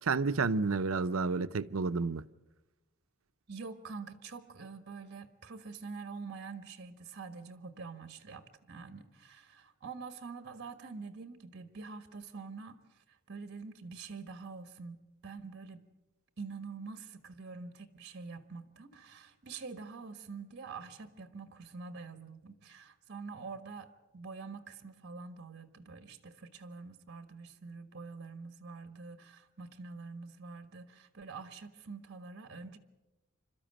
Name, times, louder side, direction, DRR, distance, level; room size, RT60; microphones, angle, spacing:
voice 1, 0.0-2.3, right 4 dB, 75° right, 0.7 m, -30 dB
voice 2, 3.5-15.9 16.4-32.8, right 4 dB, 55° right, 1.5 m, -46 dB
27.5 x 13.0 x 9.1 m
head